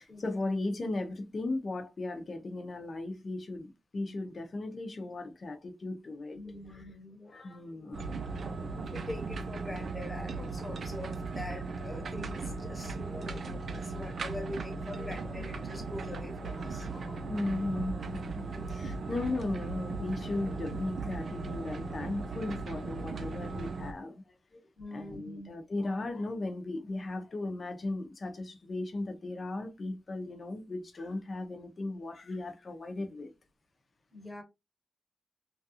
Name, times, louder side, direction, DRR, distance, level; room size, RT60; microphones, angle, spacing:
voice 1, 0.0-6.4 6.7-6.9 7.3-8.4 13.0-13.4 14.9-15.2 16.5-24.2 24.5-24.6 24.9-33.3, left 2 dB, 40° left, 0.7 m, -37 dB
voice 2, 6.3-7.5 8.8-16.9 18.5-18.6 24.8-25.5 34.1-34.4, left 1 dB, 10° left, 1.0 m, -43 dB
sound 1, 7.9-23.9, right 3 dB, 55° right, 0.4 m, -37 dB
3.1 x 2.4 x 2.8 m
wide cardioid pair, 160°, 0 cm